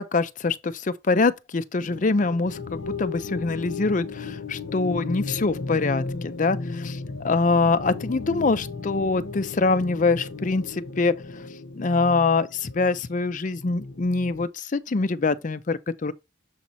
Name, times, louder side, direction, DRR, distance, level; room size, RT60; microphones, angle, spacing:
voice 1, 0.0-7.0 7.2-11.1 11.8-16.1, left 3 dB, 40° left, 0.5 m, -24 dB
sound 1, 1.8-14.5, left 4 dB, 70° left, 0.8 m, -35 dB
7.1 x 4.3 x 4.1 m
head